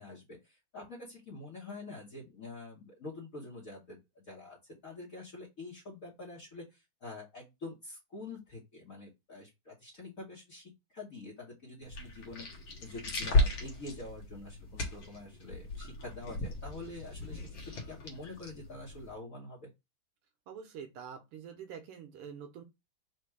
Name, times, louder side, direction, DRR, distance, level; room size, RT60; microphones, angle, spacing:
voice 1, 0.0-12.4 12.8-17.4 17.7-19.7, left 2 dB, 45° left, 1.4 m, -46 dB
sound 1, 11.8-19.1, left 2 dB, 65° left, 1.8 m, -35 dB
voice 2, 20.5-22.6, right 7 dB, 85° right, 1.7 m, -46 dB
4.4 x 2.5 x 4.6 m
omnidirectional pair, 2.4 m